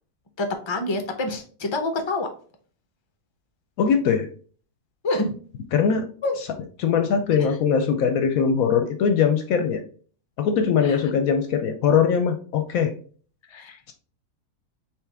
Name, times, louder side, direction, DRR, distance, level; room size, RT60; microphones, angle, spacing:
voice 1, 0.4-2.3 5.0-5.3 6.2-6.4 7.4-7.6 10.8-11.0 13.5-13.8, left 2 dB, 40° left, 5 dB, 0.3 m, -27 dB
voice 2, 3.8-4.3 5.7-6.1 6.8-9.8 10.4-12.9, left 6 dB, 70° left, 7 dB, 0.9 m, -21 dB
4.5 x 3.5 x 3.4 m, 0.43 s
omnidirectional pair, 1.7 m